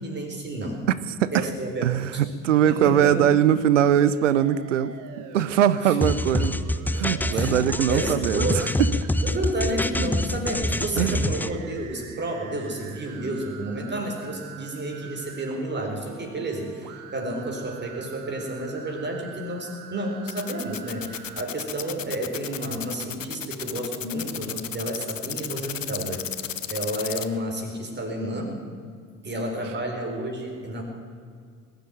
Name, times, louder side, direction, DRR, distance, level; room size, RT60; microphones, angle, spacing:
voice 1, 0.0-0.8 1.3-2.2 2.6-3.2 5.8-6.0 7.3-8.7 9.2-26.2 26.7-28.6 29.2-30.8, right 1 dB, 30° right, 2 dB, 4.3 m, -31 dB
voice 2, 1.8-6.5 6.9-9.1 11.0-11.3, right 10 dB, 80° right, 16 dB, 0.7 m, -22 dB
sound 1, 3.7-9.6 10.8-21.5, right 8 dB, 55° right, 1.4 m, -45 dB
sound 2, 6.0-11.5, left 1 dB, 5° left, 0.7 m, -25 dB
sound 3, 20.3-27.3, left 8 dB, 90° left, 0.6 m, -33 dB
20.0 x 7.8 x 9.3 m, 2.1 s
figure-of-eight pair, 55°, 37 cm